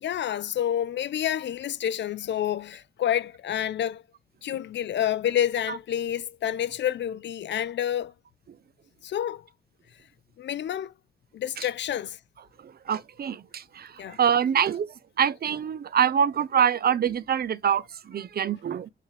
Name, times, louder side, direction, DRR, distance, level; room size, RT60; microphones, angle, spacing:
voice 1, 0.0-4.0 4.4-8.1 9.0-9.5 10.4-10.9 11.3-12.2 14.0-14.2, left 10 dB, 65° left, 0.5 m, -28 dB
voice 2, 12.6-18.9, right 8 dB, 50° right, 0.5 m, -25 dB
7.0 x 4.4 x 3.1 m
cardioid pair, 95°, 20 cm